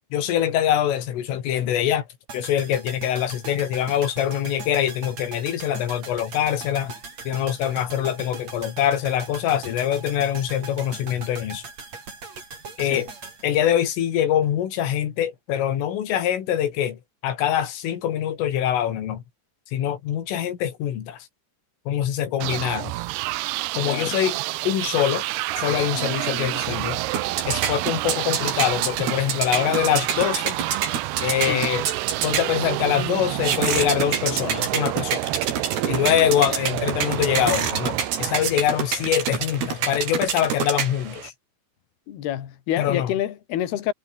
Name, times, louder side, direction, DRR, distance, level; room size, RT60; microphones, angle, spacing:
voice 1, 0.1-2.1 2.3-6.9 7.3-11.6 12.8-13.1 13.4-19.2 19.7-21.2 21.9-22.9 23.8-24.4 24.7-25.2 25.6-27.0 27.5-30.6 31.2-31.9 32.2-35.2 35.9-41.3 42.8-43.1, left 10 dB, 85° left, 5.3 m, -24 dB
sound 1, 2.3-14.5 14.7-14.8, right 4 dB, 35° right, 6.0 m, -40 dB
sound 2, 22.4-39.1, right 19 dB, 85° right, 2.3 m, -29 dB
sound 3, 26.8-41.3, right 7 dB, 55° right, 5.3 m, -28 dB
voice 2, 42.1-43.9, left 11 dB, 60° left, 4.0 m, -28 dB
omnidirectional pair, 5.6 m